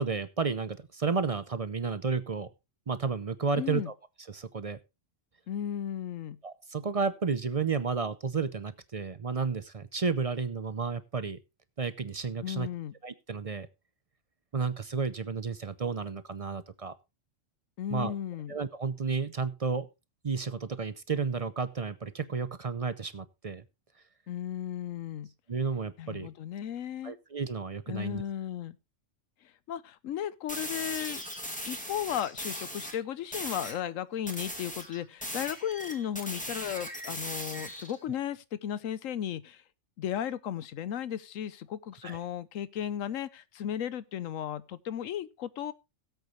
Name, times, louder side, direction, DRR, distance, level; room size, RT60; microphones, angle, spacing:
voice 1, 0.0-2.5 2.9-3.9 4.3-4.8 6.4-11.4 11.8-12.7 13.0-13.7 14.5-16.9 17.9-18.1 18.5-19.9 20.2-23.6 25.5-26.3 27.0-28.2 42.0-42.2, right 5 dB, 40° right, 0.5 m, -32 dB
voice 2, 3.6-3.9 5.5-6.4 12.4-12.9 17.8-18.5 24.3-25.3 26.0-27.1 27.9-28.8 29.7-31.2 31.6-39.6 40.0-45.7, left 10 dB, 85° left, 1.1 m, -35 dB
sound 1, 30.5-33.0 33.3-33.8 34.3-38.0, equal, 5° left, 2.2 m, -38 dB
17.0 x 8.1 x 3.1 m
omnidirectional pair, 1.3 m